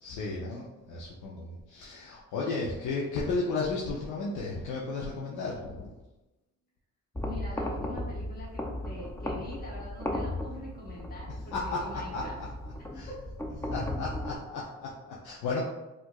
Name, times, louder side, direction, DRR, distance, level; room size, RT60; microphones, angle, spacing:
voice 1, 0.0-5.9 11.5-12.3 12.9-13.1 13.7-15.6, left 3 dB, 80° left, -4 dB, 0.6 m, -34 dB
sound 1, 7.1-14.3, left 1 dB, 10° left, 0.5 m, -36 dB
voice 2, 7.2-12.4 13.1-13.2, left 1 dB, 30° left, -5 dB, 1.1 m, -44 dB
4.4 x 2.5 x 2.3 m, 1.0 s
cardioid pair, 90°, 30 cm